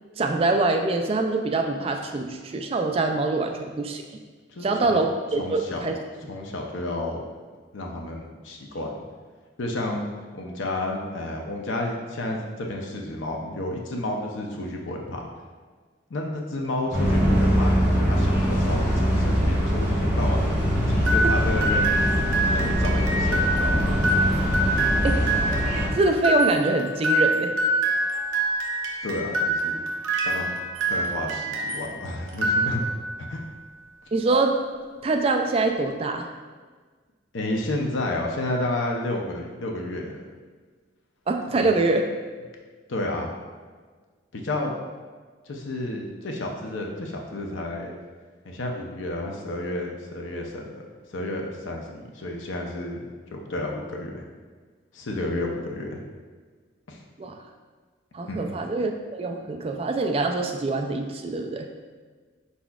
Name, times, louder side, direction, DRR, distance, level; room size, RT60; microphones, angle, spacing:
voice 1, 0.2-4.0 4.6-6.0 21.2-21.3 25.0-25.3 26.0-27.5 34.1-34.6 35.0-36.3 41.3-42.0 57.2-57.4 58.1-61.7, right 3 dB, 30° right, 4 dB, 0.3 m, -24 dB
voice 2, 4.5-5.0 5.4-5.9 6.3-7.2 7.7-9.0 9.6-10.0 10.3-15.2 16.1-20.6 20.9-22.0 22.5-24.0 24.8-25.1 29.0-29.8 30.2-30.6 30.9-32.8 33.2-33.4 37.3-40.2 41.5-41.8 42.9-43.3 44.3-44.7 45.5-47.9 48.4-50.8 51.1-53.0 53.3-54.2 54.9-56.0 56.9-57.0 58.3-58.6, left 1 dB, 80° left, 0 dB, 0.6 m, -31 dB
sound 1, 16.9-25.9, equal, 5° right, 1.5 m, -22 dB
sound 2, 21.0-31.9 32.3-33.1, right 1 dB, 80° right, 0.6 m, -25 dB
4.5 x 4.1 x 2.3 m, 1.5 s
head